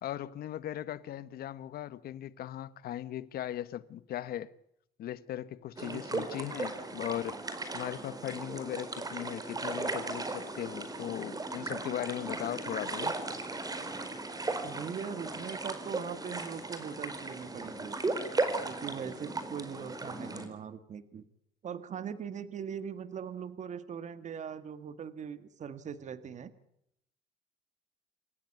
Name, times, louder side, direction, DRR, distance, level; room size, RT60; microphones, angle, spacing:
voice 1, 0.0-4.5 5.0-7.4 7.7-13.1, left 12 dB, 65° left, 1.2 m, -38 dB
sound 1, 5.8-20.5, right 3 dB, 20° right, 4.4 m, -37 dB
voice 2, 5.8-6.3 14.6-18.0 18.6-21.2 21.6-26.5, right 7 dB, 45° right, 1.7 m, -41 dB
27.5 x 15.0 x 9.6 m
cardioid pair, 110°, 17 cm